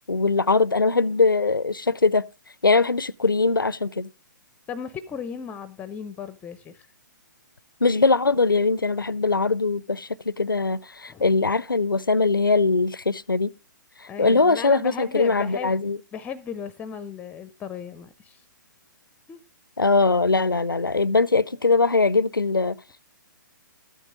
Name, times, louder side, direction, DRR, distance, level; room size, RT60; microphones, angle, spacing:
voice 1, 0.1-2.2 2.6-4.1 7.8-13.5 14.2-16.0 19.8-22.8, left 3 dB, 90° left, 0.5 m, -21 dB
voice 2, 4.7-6.9 11.1-11.2 14.1-15.7 16.1-18.4 19.3-19.4, left 7 dB, 15° left, 0.5 m, -35 dB
13.5 x 9.1 x 3.7 m
figure-of-eight pair, 125°, 11 cm